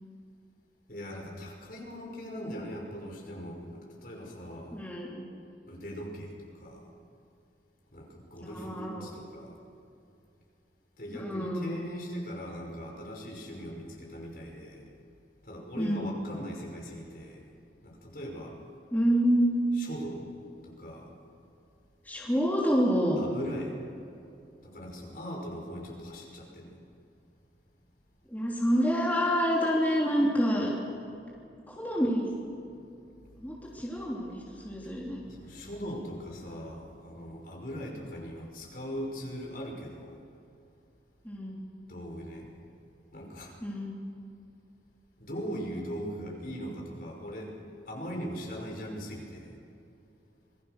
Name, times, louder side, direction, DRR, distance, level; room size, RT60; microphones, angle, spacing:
voice 1, 0.9-4.8 5.7-6.9 7.9-9.6 11.0-14.9 15.4-17.5 17.8-18.6 19.8-20.3 20.6-21.1 23.2-23.8 24.6-26.8 35.2-40.2 41.9-42.5 43.1-43.6 45.2-47.6 47.9-49.6, equal, 55° left, 0 dB, 5.6 m, -40 dB
voice 2, 4.7-5.3 8.4-9.1 11.1-11.8 15.8-16.1 18.9-19.6 22.0-23.2 28.3-30.7 31.7-32.3 33.4-35.2 41.2-41.6 43.6-44.0, equal, 10° left, -5 dB, 3.2 m, -28 dB
27.0 x 21.5 x 6.6 m, 2.7 s
head